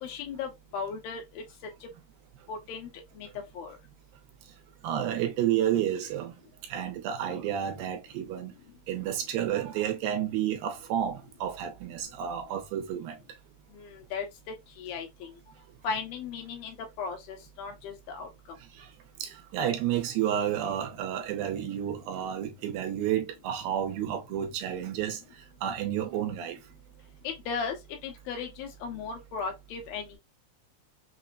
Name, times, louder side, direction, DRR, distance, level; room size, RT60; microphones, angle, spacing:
voice 1, 0.0-1.4 2.5-2.9 3.2-3.3 3.6-3.8 13.8-14.3 14.8-15.3 15.8-18.3 27.2-30.2, left 5 dB, 75° left, 2.7 m, -36 dB
voice 2, 4.8-6.3 6.7-8.5 8.9-13.2 18.7-18.9 19.2-26.6, right 10 dB, 80° right, 2.3 m, -31 dB
6.0 x 2.1 x 2.5 m
omnidirectional pair, 4.3 m